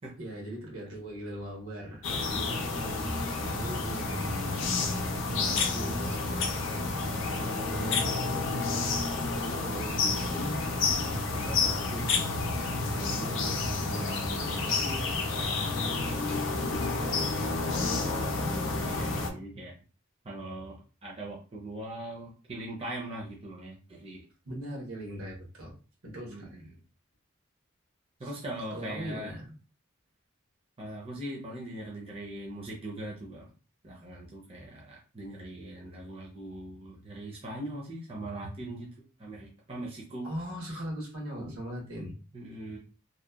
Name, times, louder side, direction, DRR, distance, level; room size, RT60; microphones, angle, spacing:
voice 1, 0.2-6.2 7.3-11.1 11.3-18.0 24.4-25.7 26.0-26.7 28.2-28.3 28.7-29.5 40.2-42.1, equal, 75° right, -1 dB, 1.0 m, -41 dB
sound 1, 2.0-19.3, left 3 dB, 60° left, 0.5 m, -30 dB
voice 2, 7.8-8.2 18.2-19.7 20.2-24.2 26.3-26.7 28.2-29.4 30.8-33.5 33.8-38.9 39.2-40.3 40.7-40.8 41.4-41.6 42.3-42.8, right 1 dB, 30° right, -2 dB, 0.5 m, -41 dB
2.7 x 2.1 x 2.3 m, 0.35 s
head